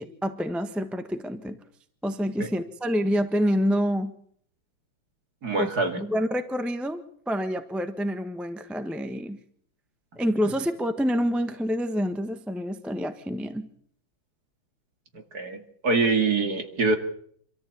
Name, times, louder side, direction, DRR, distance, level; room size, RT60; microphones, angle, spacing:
voice 1, 0.0-1.6 2.0-4.1 5.6-5.7 6.0-9.4 10.2-13.7, equal, ahead, 8 dB, 1.0 m, -27 dB
voice 2, 5.4-6.0 15.1-15.6 15.8-17.0, right 3 dB, 45° right, 6 dB, 2.8 m, -24 dB
26.5 x 14.0 x 8.6 m, 0.64 s
omnidirectional pair, 2.4 m